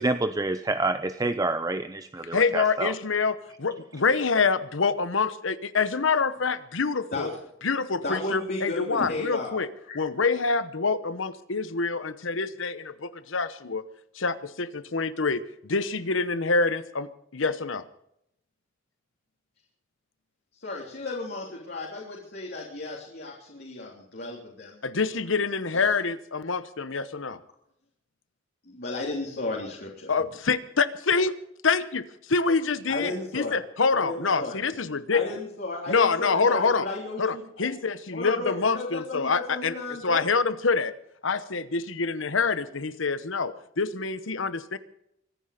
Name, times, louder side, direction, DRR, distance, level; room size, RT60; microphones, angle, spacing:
voice 1, 0.0-2.9, right 2 dB, 20° right, 10 dB, 0.6 m, -27 dB
voice 2, 2.3-7.3 7.6-9.7 9.9-13.8 14.1-17.8 24.8-27.4 30.1-31.3 31.6-35.2 35.9-36.9 37.2-39.7 40.0-40.9 41.2-44.8, left 4 dB, 85° left, 14 dB, 1.0 m, -26 dB
voice 3, 8.0-9.5 9.9-10.0 20.6-24.8 25.7-25.9 28.7-30.1 32.9-33.6 33.9-34.6 35.1-37.7 38.1-40.2, left 2 dB, 55° left, -3 dB, 3.5 m, -34 dB
24.5 x 10.0 x 5.1 m, 0.76 s
head